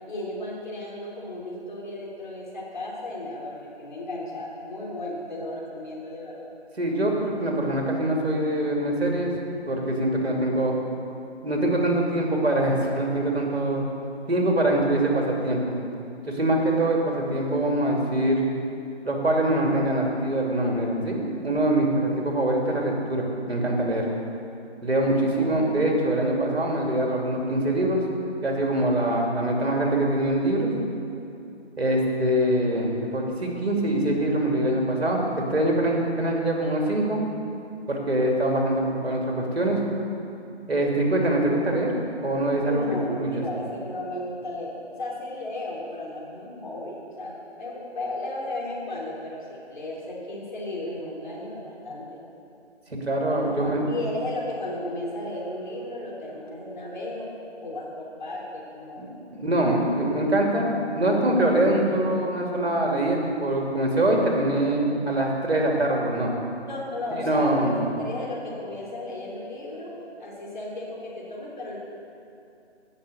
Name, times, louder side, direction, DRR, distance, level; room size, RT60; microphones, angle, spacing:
voice 1, 0.1-6.5 25.0-25.4 42.7-52.2 53.3-57.3 57.6-59.1 66.7-69.9 70.2-71.8, left 1 dB, 45° left, -4 dB, 3.3 m, -34 dB
voice 2, 6.8-9.3 9.7-10.8 11.4-13.8 14.3-15.7 16.2-18.4 19.0-24.1 24.8-28.0 28.4-30.7 31.8-37.2 37.9-39.8 40.7-41.9 42.2-43.4 52.9-53.9 59.0-66.3 67.2-67.8, right 1 dB, 65° right, 0 dB, 2.8 m, -24 dB
17.0 x 6.0 x 6.9 m, 2.7 s
figure-of-eight pair, 155°, 34 cm